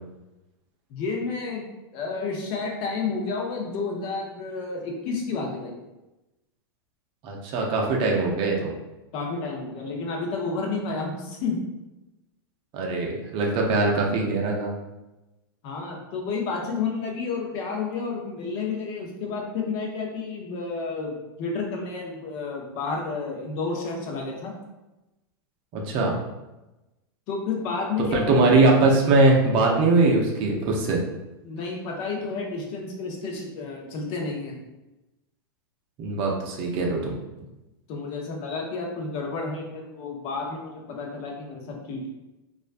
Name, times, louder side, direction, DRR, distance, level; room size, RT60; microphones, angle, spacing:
voice 1, 0.9-5.8 9.1-11.6 15.6-24.5 27.3-28.5 31.0-31.1 31.4-34.6 37.9-42.1, left 4 dB, 50° left, 0 dB, 0.6 m, -31 dB
voice 2, 7.2-8.7 12.7-14.7 25.7-26.2 28.1-31.0 36.0-37.1, right 3 dB, 45° right, 0 dB, 0.5 m, -21 dB
2.4 x 2.1 x 2.5 m, 1.0 s
hypercardioid pair, 110°, 13 cm